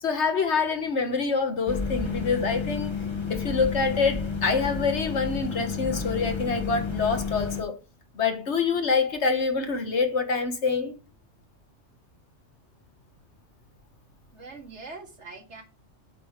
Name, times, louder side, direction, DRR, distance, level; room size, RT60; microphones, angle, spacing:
voice 1, 0.0-2.9 3.3-7.7 8.1-11.0, left 4 dB, 65° left, 1.6 m, -26 dB
sound 1, 1.7-7.6, left 5 dB, 25° left, 1.1 m, -31 dB
voice 2, 14.3-15.6, right 3 dB, 65° right, 1.9 m, -42 dB
7.7 x 4.7 x 5.0 m
omnidirectional pair, 1.3 m